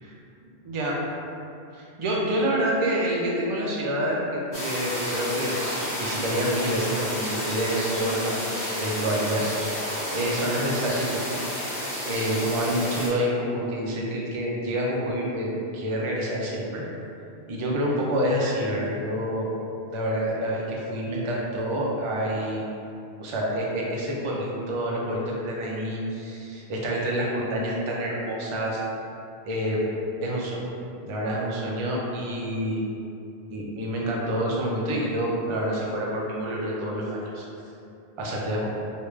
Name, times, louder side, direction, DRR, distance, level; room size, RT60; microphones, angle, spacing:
voice 1, 1.7-9.4 10.1-11.4 12.0-16.8 17.5-19.5 19.9-22.7 23.2-28.8 29.5-29.8 30.2-30.6 31.0-32.9 33.5-37.4 38.2-38.7, equal, 45° right, -4 dB, 0.4 m, -27 dB
sound 1, 4.5-13.1, equal, 85° left, 1.4 m, -31 dB
3.1 x 2.4 x 3.2 m, 2.7 s
omnidirectional pair, 1.1 m